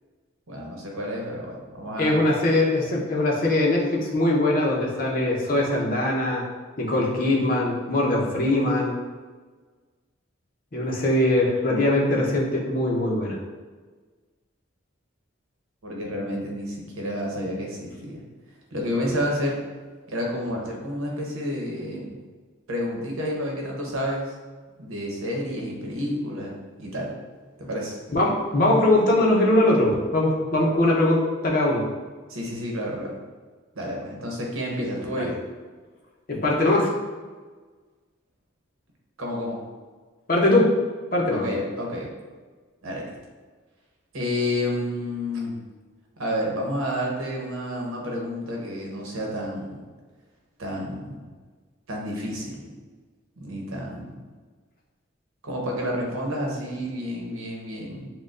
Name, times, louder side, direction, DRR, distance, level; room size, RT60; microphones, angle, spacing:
voice 1, 0.5-2.2 15.8-18.2 18.7-19.6 20.1-22.1 22.7-24.3 24.8-27.1 27.6-28.0 32.3-33.2 33.7-35.3 39.2-39.6 41.3-42.1 42.8-43.2 44.1-45.6 46.2-49.8 50.6-51.2 51.9-52.7 53.4-54.2 55.4-58.1, equal, 85° right, -1 dB, 0.9 m, -30 dB
voice 2, 2.0-6.4 6.8-8.9 10.7-13.4 28.1-31.8 35.1-35.3 36.3-36.9 40.3-40.7 41.1-41.5, left 1 dB, 40° left, -3 dB, 0.6 m, -21 dB
6.4 x 2.2 x 2.4 m, 1.4 s
head